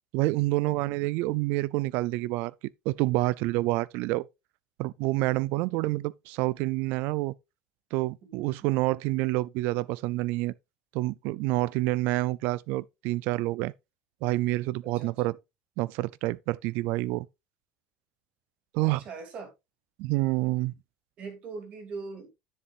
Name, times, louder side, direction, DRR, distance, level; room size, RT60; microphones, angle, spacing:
voice 1, 0.1-2.5 2.9-4.3 4.8-7.3 7.9-10.5 10.9-13.7 14.2-15.4 15.8-17.3 18.7-19.0 20.0-20.7, right 19 dB, 60° right, 0.4 m, -28 dB
voice 2, 8.2-8.7 15.0-15.3 18.8-19.5 21.2-22.3, right 4 dB, 35° right, 2.7 m, -42 dB
10.5 x 7.1 x 2.5 m
cardioid pair, 170°, 4 cm